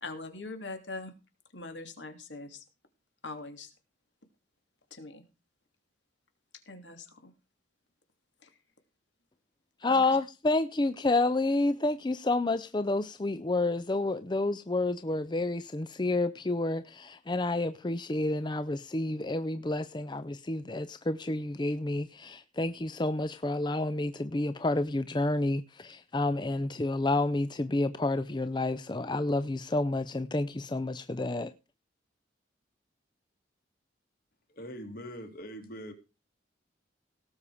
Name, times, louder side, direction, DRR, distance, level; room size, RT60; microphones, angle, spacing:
voice 1, 0.0-1.1 1.5-2.6 3.2-3.7 4.9-5.2 6.7-7.3 8.4-8.5 9.9-10.1, left 3 dB, 75° left, 3.0 m, -42 dB
voice 2, 9.8-31.5, left 2 dB, 25° left, 0.5 m, -29 dB
voice 3, 34.5-35.9, equal, 50° left, 2.9 m, -42 dB
18.0 x 6.9 x 5.0 m
head